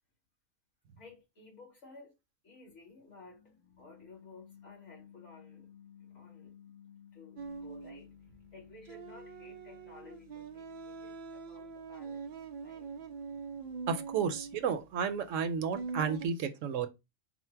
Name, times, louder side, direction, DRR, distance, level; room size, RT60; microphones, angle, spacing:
voice 1, 1.0-2.1 2.4-12.3 12.6-12.9, left 4 dB, 60° left, 2.5 m, -54 dB
sound 1, 7.4-16.3, right 5 dB, 55° right, 0.5 m, -44 dB
voice 2, 13.9-16.9, right 6 dB, 75° right, 0.9 m, -32 dB
4.3 x 2.0 x 4.4 m
omnidirectional pair, 1.4 m